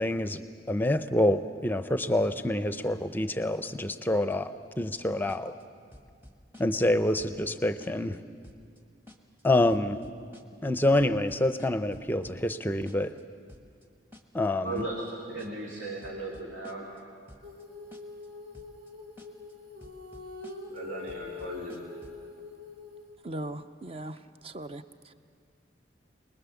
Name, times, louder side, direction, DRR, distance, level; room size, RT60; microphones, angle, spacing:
voice 1, 0.0-5.5 6.6-8.2 9.4-10.0 10.6-13.1 14.3-14.9, left 1 dB, 10° left, 11 dB, 0.6 m, -27 dB
sound 1, 5.3-5.6 5.9-6.9 7.2-7.5 7.8-8.2 8.4-8.8 9.1-9.4 9.7-10.7 11.0-12.6 12.9-13.2 13.5-13.9 14.1-14.5 14.8-15.1 15.4-15.7 16.0-17.0 17.3-17.6 17.9-18.3 18.5-18.9 19.2-19.5 19.8-20.8 21.1-22.2, left 1 dB, 10° right, 1.2 m, -52 dB
voice 2, 14.6-16.9 20.7-21.9, right 2 dB, 80° right, -3 dB, 2.5 m, -37 dB
Female singing, 17.4-23.1, left 4 dB, 65° right, 3.9 m, -44 dB
voice 3, 23.2-25.1, right 1 dB, 30° right, 11 dB, 0.6 m, -39 dB
23.5 x 20.5 x 7.1 m, 2.2 s
head